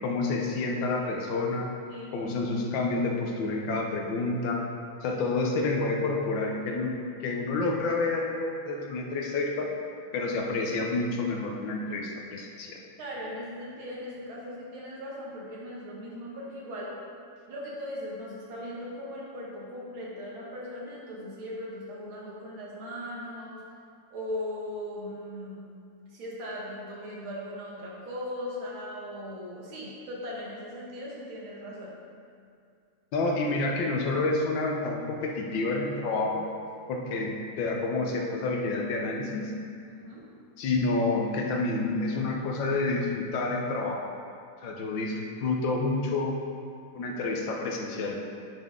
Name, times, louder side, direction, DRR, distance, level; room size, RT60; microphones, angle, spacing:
voice 1, 0.0-1.7 2.1-4.6 5.0-7.0 7.2-9.7 10.1-12.8 33.1-36.5 36.9-39.5 40.6-44.1 44.6-46.4 46.9-48.2, left 3 dB, 70° left, 1 dB, 1.4 m, -29 dB
voice 2, 13.0-16.9 17.5-23.6 24.1-25.6 26.1-31.9 39.9-40.2, left 1 dB, 80° right, -5 dB, 2.2 m, -38 dB
10.5 x 4.2 x 3.6 m, 2.3 s
omnidirectional pair, 2.2 m